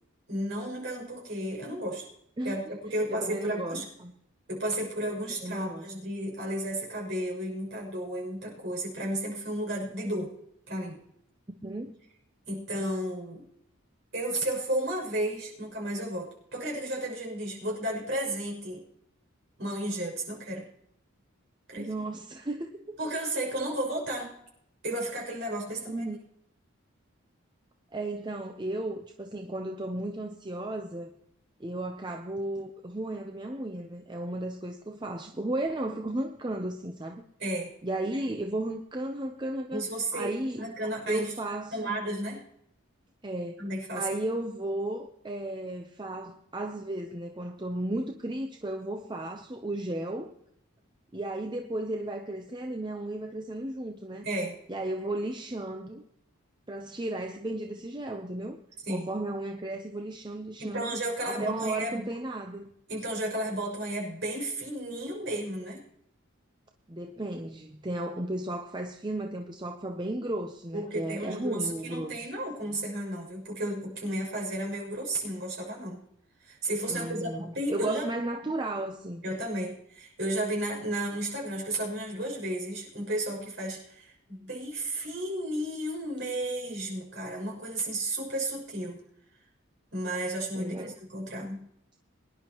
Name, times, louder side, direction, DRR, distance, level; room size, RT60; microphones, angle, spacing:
voice 1, 0.3-2.1 2.4-3.8 4.5-10.3 10.7-11.0 12.5-13.4 14.1-18.8 19.6-20.7 21.7-21.9 23.0-24.3 24.8-26.0 37.4-37.7 39.7-41.3 41.7-42.4 43.6-44.1 54.2-54.5 58.8-59.1 60.6-62.1 62.9-65.8 70.7-76.0 76.4-78.0 79.2-89.0 89.9-91.6, right 1 dB, 55° right, -2 dB, 6.4 m, -33 dB
voice 2, 3.1-4.1 5.4-5.9 11.6-12.0 21.8-23.0 25.9-26.2 27.9-31.1 31.6-37.2 37.8-39.8 40.1-40.6 41.1-42.0 43.2-43.6 43.9-50.3 51.1-54.2 54.7-56.0 56.7-58.6 58.9-61.0 61.2-62.7 66.9-72.3 76.9-79.2 90.6-90.9, right 1 dB, 20° right, 4 dB, 0.6 m, -34 dB
23.5 x 11.0 x 3.0 m, 0.73 s
head